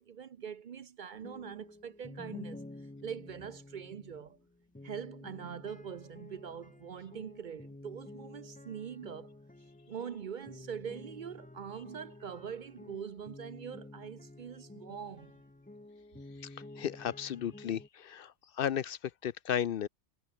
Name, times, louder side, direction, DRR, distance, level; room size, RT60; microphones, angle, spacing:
voice 1, 0.0-2.6 3.0-4.4 4.8-9.4 9.9-15.3, right 7 dB, 55° right, 0.7 m, -43 dB
sound 1, 1.1-17.9, left 2 dB, 10° left, 0.5 m, -50 dB
voice 2, 16.8-18.3 18.6-19.9, left 9 dB, 60° left, 0.7 m, -34 dB
omnidirectional pair, 1.1 m